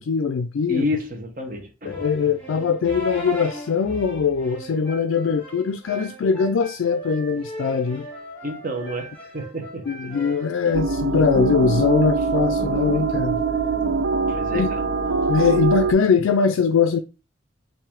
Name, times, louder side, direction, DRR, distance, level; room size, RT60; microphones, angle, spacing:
voice 1, 0.0-0.8 1.8-8.0 9.9-13.4 14.5-14.7 15.3-17.0, left 5 dB, 90° left, 0.4 m, -21 dB
voice 2, 0.7-2.3 5.3-5.4 8.4-10.1 10.6-10.8 14.3-14.8, left 1 dB, 45° right, 1.0 m, -30 dB
sound 1, 1.9-11.0, equal, 5° left, 1.6 m, -37 dB
sound 2, 10.7-15.9, right 4 dB, 65° right, 0.5 m, -23 dB
5.7 x 2.7 x 3.5 m
head